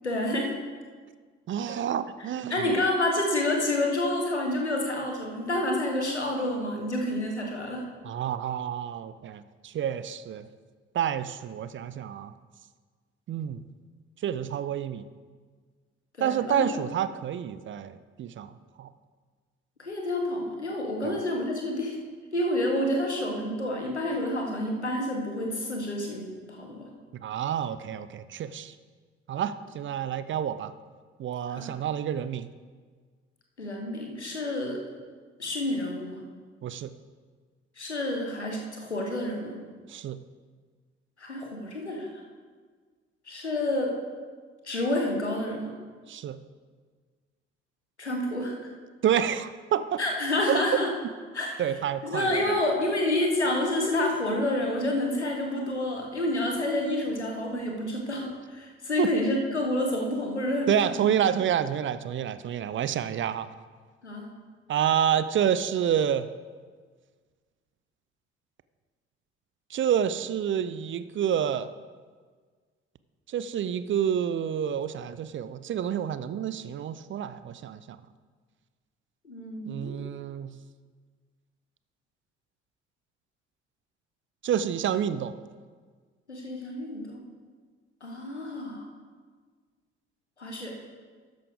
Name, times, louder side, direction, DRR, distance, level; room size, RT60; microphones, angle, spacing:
voice 1, 0.0-0.5 2.5-7.9 16.2-16.6 19.8-22.0 22.3-26.9 31.5-31.7 33.6-34.8 35.4-36.2 37.8-39.5 41.2-42.1 43.3-43.9 44.6-45.7 48.0-48.7 50.0-50.9 51.3-51.6 52.0-61.0 64.0-64.3 79.2-80.0 86.3-87.2 88.0-88.8 90.4-90.7, left 1 dB, 90° left, 1 dB, 1.2 m, -29 dB
voice 2, 1.5-2.8 8.0-10.5 10.9-12.3 13.3-13.6 14.2-15.1 16.2-18.5 18.8-18.9 21.0-21.2 27.2-28.7 29.3-30.7 31.2-32.5 36.6-36.9 39.9-40.2 46.1-46.4 49.0-50.0 50.5-50.6 51.6-52.6 59.0-59.1 60.7-63.5 64.7-66.3 69.7-71.7 73.3-78.0 79.7-80.5 84.4-85.3, right 9 dB, 35° right, 14 dB, 0.6 m, -28 dB
12.5 x 9.0 x 3.6 m, 1.5 s
figure-of-eight pair, 45°, 33 cm